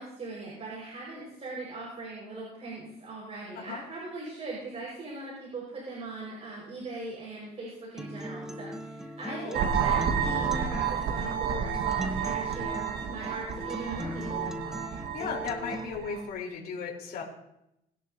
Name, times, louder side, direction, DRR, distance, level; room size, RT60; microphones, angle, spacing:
voice 1, 0.0-14.5, right 2 dB, 40° right, -5 dB, 5.2 m, -40 dB
Acoustic guitar, 8.0-16.0, equal, 5° right, 1.0 m, -39 dB
voice 2, 9.2-9.6 14.9-17.2, left 5 dB, 65° left, -2 dB, 3.8 m, -36 dB
sound 1, 9.5-16.3, right 7 dB, 80° right, 1.5 m, -31 dB
21.0 x 11.0 x 2.8 m, 0.83 s
cardioid pair, 110°, 17 cm